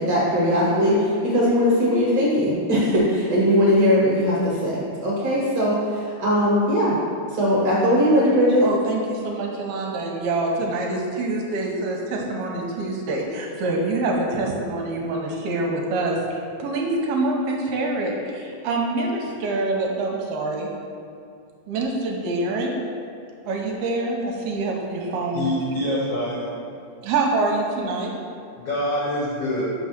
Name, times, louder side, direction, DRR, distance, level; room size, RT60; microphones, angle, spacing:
voice 1, 0.0-6.9 7.3-8.6, equal, 60° right, -6 dB, 1.8 m, -20 dB
voice 2, 8.6-20.7 21.7-22.8 23.4-25.5 27.0-28.1, right 2 dB, 75° right, -1 dB, 2.6 m, -25 dB
voice 3, 25.3-26.5 28.6-29.6, left 1 dB, 90° left, -6 dB, 1.3 m, -26 dB
6.1 x 6.0 x 5.9 m, 2.4 s
omnidirectional pair, 4.7 m